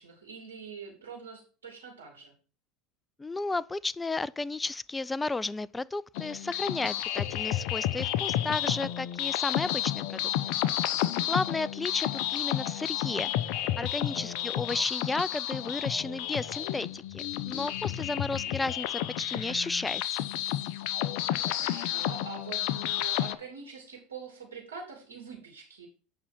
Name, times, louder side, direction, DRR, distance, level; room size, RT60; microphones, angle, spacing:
voice 1, 0.0-2.3 14.2-14.5 21.6-25.9, right 5 dB, 80° right, 2.5 m, -44 dB
voice 2, 3.2-10.3 11.2-20.2, left 3 dB, 15° left, 0.4 m, -33 dB
sound 1, 6.2-23.4, left 12 dB, 60° left, 0.7 m, -31 dB
8.5 x 5.6 x 4.3 m
hypercardioid pair, 75°, 0 cm